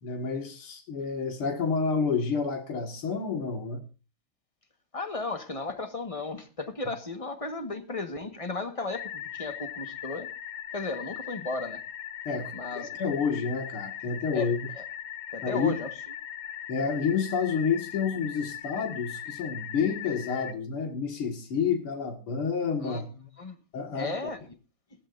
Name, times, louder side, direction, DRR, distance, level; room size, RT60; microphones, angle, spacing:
voice 1, 0.0-3.8 12.3-14.7 15.4-15.8 16.7-23.0 23.7-24.2, left 5 dB, 90° left, 2.7 m, -29 dB
voice 2, 4.9-10.3 10.7-11.8 12.5-12.9 14.3-14.5 14.8-14.9 15.3-15.9 22.8-23.6 23.9-24.4, left 3 dB, 20° left, 1.3 m, -35 dB
sound 1, 8.9-20.5, left 10 dB, 70° left, 1.6 m, -39 dB
20.5 x 13.5 x 2.6 m
omnidirectional pair, 2.3 m